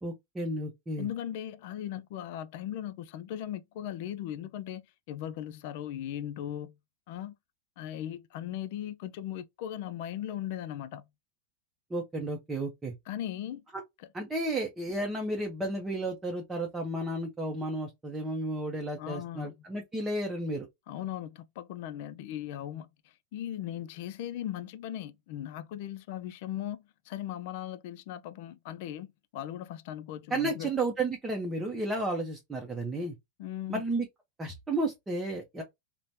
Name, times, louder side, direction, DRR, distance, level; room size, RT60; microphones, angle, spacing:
voice 1, 0.0-1.1 11.9-12.9 13.7-13.8 14.1-20.7 30.3-33.1 33.7-34.1 34.4-35.6, right 2 dB, 10° right, 0.7 m, -32 dB
voice 2, 1.0-6.8 7.1-7.4 7.8-11.1 13.1-13.6 19.0-19.5 20.9-30.7 33.4-33.8, left 11 dB, 60° left, 0.4 m, -38 dB
3.1 x 2.1 x 2.5 m
supercardioid pair, 130°, 0 cm